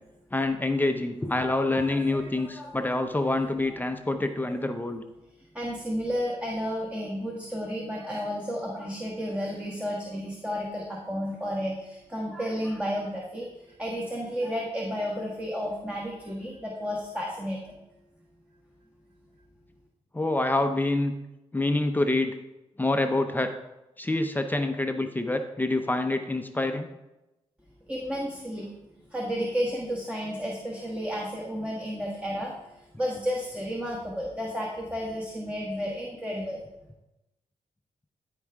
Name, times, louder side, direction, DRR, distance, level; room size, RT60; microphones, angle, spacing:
voice 1, 0.3-5.0 20.1-21.1 21.5-22.4 22.8-23.5 24.0-26.9, left 2 dB, 15° left, 6 dB, 0.7 m, -26 dB
voice 2, 1.7-2.9 3.2-3.3 5.5-17.8 27.9-28.7 29.1-32.5 33.0-36.6, equal, 10° right, -3 dB, 1.5 m, -32 dB
13.0 x 4.9 x 3.5 m, 0.96 s
cardioid pair, 75°, 12 cm